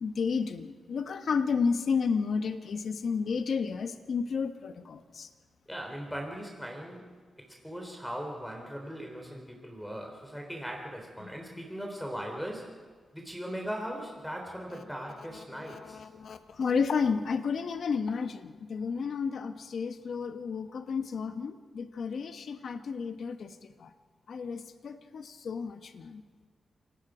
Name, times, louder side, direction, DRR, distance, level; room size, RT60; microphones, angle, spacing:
voice 1, 0.0-5.3 11.2-11.6 15.3-23.9 24.3-26.2, left 5 dB, 70° left, 9 dB, 1.1 m, -32 dB
voice 2, 5.7-7.1 7.4-12.8 13.1-16.0, equal, 5° left, 2 dB, 3.6 m, -39 dB
28.0 x 19.0 x 5.0 m, 1.5 s
cardioid pair, 75°, 0 cm